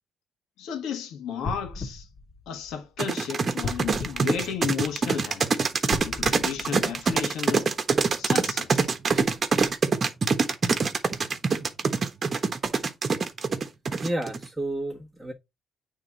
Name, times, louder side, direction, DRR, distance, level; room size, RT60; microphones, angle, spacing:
voice 1, 0.6-2.1 2.5-5.5 6.0-7.7 8.2-8.9, left 7 dB, 85° left, 1.6 m, -33 dB
sound 1, 1.4-3.1 3.6-5.2 5.8-7.5 8.0-8.1, left 3 dB, 35° left, 2.5 m, -37 dB
sound 2, 3.0-14.5, right 5 dB, 40° right, 1.2 m, -24 dB
voice 2, 14.0-15.3, right 1 dB, 5° right, 1.6 m, -31 dB
8.8 x 3.6 x 4.0 m
cardioid pair, 90°, 0 cm